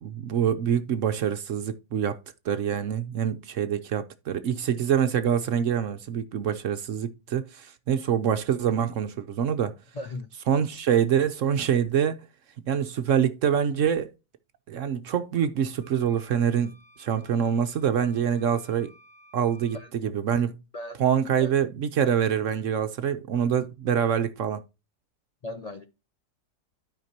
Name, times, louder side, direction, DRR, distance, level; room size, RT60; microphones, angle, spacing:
voice 1, 0.0-2.2 2.4-9.7 10.5-12.2 12.7-14.1 14.7-18.9 19.3-19.8 20.0-20.6 21.0-24.6, right 8 dB, 65° right, 0.8 m, -25 dB
voice 2, 9.9-10.3 19.7-19.9 20.7-21.0 21.4-21.5 25.4-25.9, left 1 dB, 60° left, 0.4 m, -37 dB
sound 1, 15.8-19.9, right 1 dB, 10° left, 1.3 m, -56 dB
12.5 x 5.1 x 2.8 m
omnidirectional pair, 1.7 m